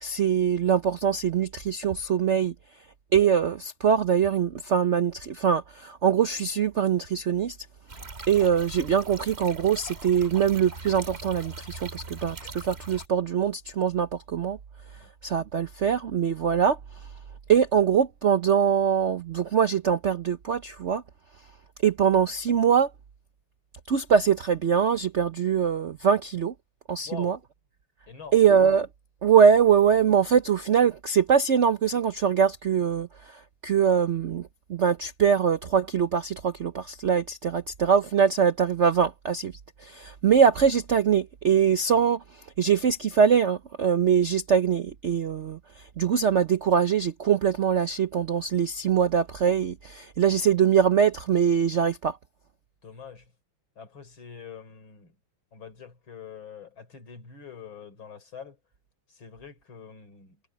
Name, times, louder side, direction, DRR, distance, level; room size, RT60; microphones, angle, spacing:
voice 1, 0.0-2.5 3.1-7.6 8.3-14.6 15.2-16.8 17.5-21.0 21.8-22.9 23.9-26.5 26.9-27.4 28.3-28.9 29.2-39.5 39.8-45.6 46.0-52.2, right 7 dB, 60° right, 0.7 m, -23 dB
sound 1, 7.9-13.1, right 3 dB, 30° right, 2.4 m, -41 dB
voice 2, 27.0-27.4 28.1-28.4 52.8-53.3 53.8-55.2 55.5-58.6 59.1-60.4, left 6 dB, 75° left, 4.7 m, -44 dB
omnidirectional pair, 2.2 m